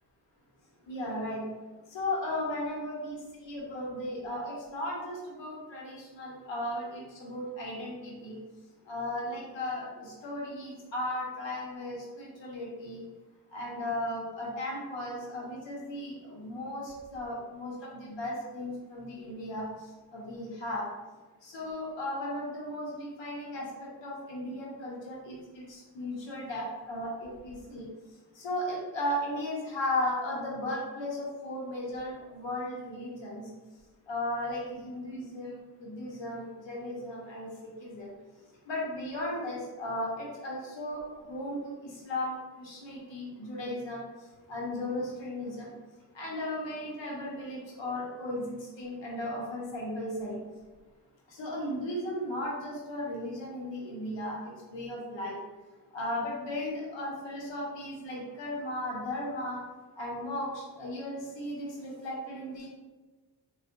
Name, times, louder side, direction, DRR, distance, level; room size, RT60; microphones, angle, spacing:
voice 1, 0.9-1.4 1.9-8.4 8.8-13.1 13.5-20.9 21.4-27.9 28.3-33.5 34.1-38.1 38.6-45.7 46.1-50.4 51.3-55.4 55.9-59.6 60.0-62.7, left 1 dB, 90° left, -4 dB, 1.0 m, -36 dB
3.6 x 2.4 x 2.5 m, 1.2 s
wide cardioid pair, 100°, 44 cm